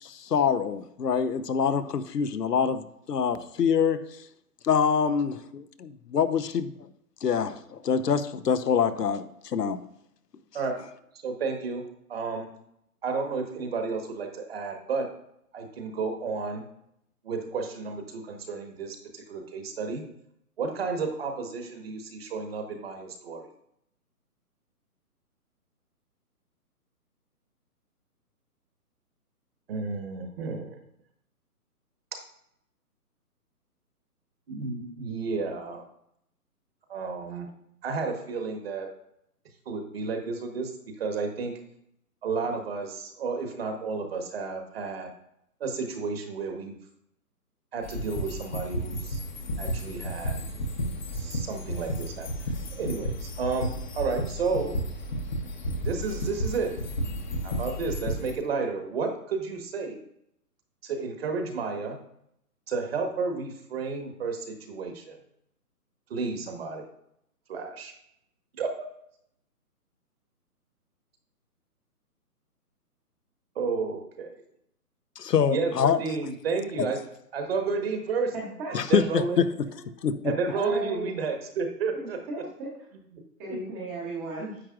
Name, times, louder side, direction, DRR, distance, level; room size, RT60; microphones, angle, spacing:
voice 1, 0.0-4.0 4.6-6.7 7.2-9.8 75.2-76.0 76.8-76.9 78.7-79.4 80.0-80.3, left 7 dB, 85° left, 12 dB, 0.9 m, -25 dB
voice 2, 11.2-11.8 12.1-12.5 13.0-15.1 15.5-16.7 17.2-20.0 20.6-23.5 29.7-30.8 32.1-32.2 34.5-35.8 36.9-37.5 37.8-38.9 39.7-40.7 41.0-41.5 42.2-45.1 45.6-46.8 47.7-49.2 49.6-50.3 51.1-52.3 52.7-54.8 55.8-56.7 57.4-60.0 60.8-62.0 62.7-65.2 66.1-66.8 67.5-67.9 68.6-68.9 73.5-74.4 75.5-77.0 77.3-78.3 78.9-79.4 80.2-82.2, right 4 dB, 40° right, 4 dB, 1.4 m, -31 dB
sound 1, 47.8-58.3, equal, 30° left, 0.8 m, -32 dB
voice 3, 78.3-78.8 79.9-80.0 80.3-81.1 81.9-82.7 83.4-84.6, right 2 dB, 10° right, -3 dB, 0.8 m, -36 dB
9.9 x 7.5 x 2.5 m, 0.75 s
hypercardioid pair, 155°, 47 cm